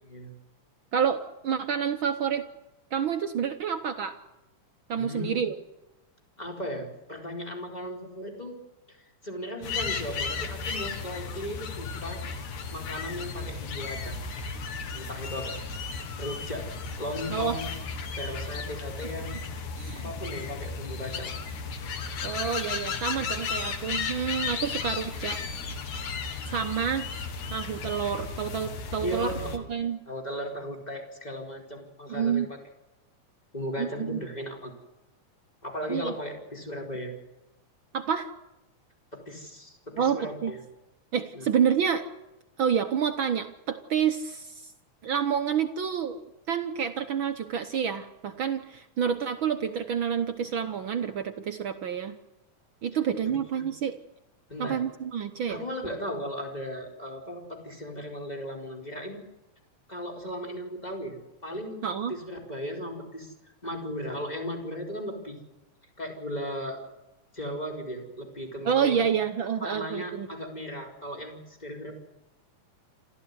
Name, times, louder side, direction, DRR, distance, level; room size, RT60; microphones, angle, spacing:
voice 1, 0.9-2.4 2.9-4.1 4.9-5.6 17.3-17.5 19.8-20.1 22.2-25.4 26.5-27.1 27.5-30.0 32.1-32.5 33.8-34.2 35.9-36.1 37.9-38.3 40.0-40.5 41.1-42.0 42.6-44.7 45.0-46.2 46.5-52.1 52.8-54.0 54.6-55.6 61.8-62.1 68.6-70.3, right 7 dB, 70° right, 7 dB, 1.2 m, -28 dB
voice 2, 5.0-5.4 6.4-8.6 8.9-9.0 9.2-12.2 12.7-14.2 14.9-15.5 16.2-16.7 17.0-17.7 18.2-19.4 19.9-21.3 29.0-29.7 30.1-32.5 33.5-34.7 35.6-37.1 39.1-40.6 41.3-41.5 53.5-53.6 54.5-54.8 55.5-59.2 59.9-61.2 61.4-61.8 62.1-63.3 63.6-65.4 66.0-66.8 67.3-69.0 69.6-71.9, equal, 10° left, 2 dB, 4.3 m, -36 dB
sound 1, 9.6-29.6, left 5 dB, 65° left, 3.1 m, -34 dB
27.5 x 14.0 x 9.6 m, 0.98 s
omnidirectional pair, 3.6 m